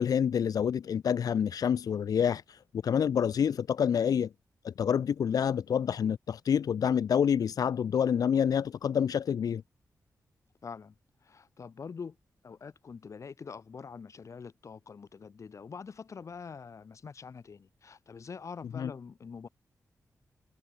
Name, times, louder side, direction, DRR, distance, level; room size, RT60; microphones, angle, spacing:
voice 1, 0.0-4.3 4.6-9.6 18.8-18.9, left 8 dB, 80° left, 2.2 m, -27 dB
voice 2, 10.6-10.9 11.2-12.2 12.4-19.5, left 5 dB, 55° left, 6.7 m, -45 dB
wide cardioid pair, 105°, 6 cm